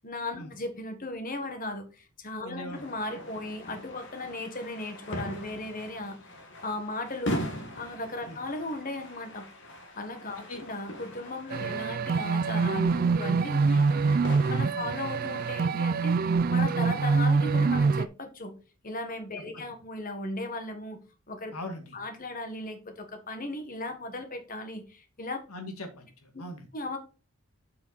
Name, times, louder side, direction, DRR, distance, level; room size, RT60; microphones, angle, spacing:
voice 1, 0.0-6.2 6.6-7.4 7.7-9.5 9.9-14.0 14.5-16.2 16.5-18.5 18.8-21.0 21.3-21.5 21.9-25.4 26.7-27.0, left 2 dB, 40° left, 7 dB, 1.6 m, -36 dB
voice 2, 2.4-2.8 8.3-8.4 10.5-10.6 11.6-11.7 13.6-13.9 14.7-14.9 19.5-19.6 21.5-21.9 25.5-26.7, left 1 dB, 85° left, 6 dB, 2.1 m, -40 dB
sound 1, 2.7-15.6, equal, 55° left, 2.0 m, -41 dB
sound 2, 11.5-18.1, right 4 dB, 40° right, 0.3 m, -25 dB
7.4 x 5.9 x 4.1 m, 0.33 s
head